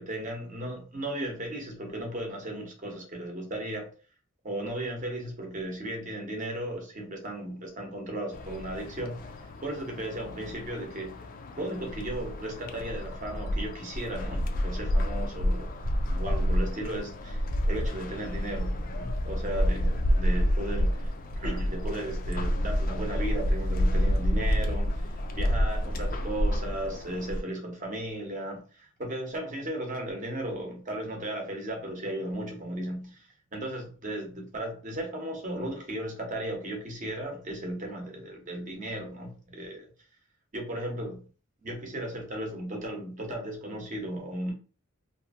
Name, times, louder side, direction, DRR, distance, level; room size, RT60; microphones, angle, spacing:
voice 1, 0.0-3.9 4.4-9.3 9.6-11.2 11.6-15.7 16.0-39.9 40.5-41.2 41.6-44.5, right 1 dB, 40° right, 0.8 m, -36 dB
sound 1, 8.3-27.4, equal, 40° left, 0.4 m, -29 dB
2.7 x 2.6 x 2.4 m
head